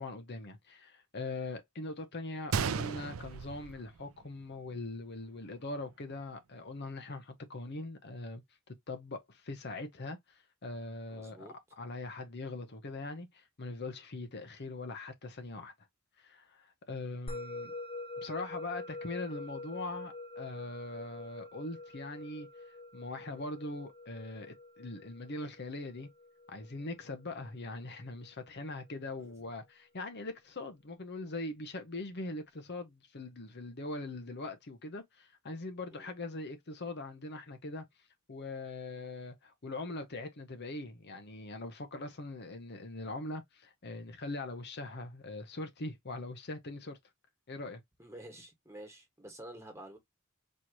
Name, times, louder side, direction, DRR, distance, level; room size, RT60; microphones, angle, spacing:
voice 1, 0.0-8.4 8.9-11.5 11.8-15.7 16.2-17.7 18.2-22.5 22.9-26.1 26.5-37.8 38.3-47.0 47.5-47.8, left 2 dB, 55° left, 0.9 m, -41 dB
Gunshot gunfire, 2.5-4.5 4.8-4.9 5.6-5.8, right 6 dB, 90° right, 0.5 m, -35 dB
voice 2, 11.1-11.5 29.2-29.3 35.9-36.1 48.0-50.0, right 1 dB, 15° right, 1.6 m, -49 dB
Musical instrument, 17.3-27.9, left 2 dB, 30° left, 0.8 m, -46 dB
4.4 x 3.1 x 2.9 m
head